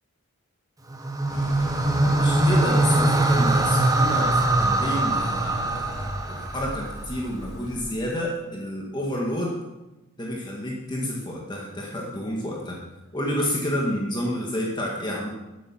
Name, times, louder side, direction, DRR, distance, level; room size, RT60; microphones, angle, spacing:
sound 1, 0.9-7.2, right 2 dB, 15° right, 1.0 m, -22 dB
sound 2, 1.3-7.8, equal, 45° left, 4.9 m, -36 dB
voice 1, 2.0-6.0 6.3-9.5 10.2-12.8 13.1-15.3, equal, 20° left, -2 dB, 1.8 m, -29 dB
13.0 x 8.0 x 6.2 m, 1.0 s
head